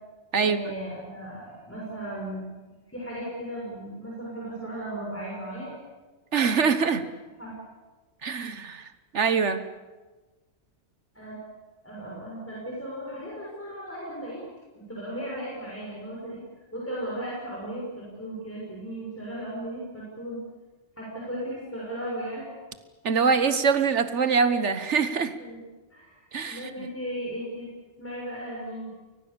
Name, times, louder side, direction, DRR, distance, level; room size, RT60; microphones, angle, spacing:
voice 1, 0.4-5.7 7.4-7.6 11.1-11.4 11.8-14.4 14.7-16.4 16.7-20.4 21.0-22.5 25.4-25.6 25.9-27.7 28.0-28.9, right 1 dB, 10° left, -5 dB, 6.5 m, -36 dB
voice 2, 6.3-7.0 8.2-8.9 9.1-9.6 23.0-25.3 26.3-26.9, right 5 dB, 75° right, 11 dB, 1.6 m, -24 dB
30.0 x 23.0 x 7.0 m, 1.3 s
omnidirectional pair, 1.2 m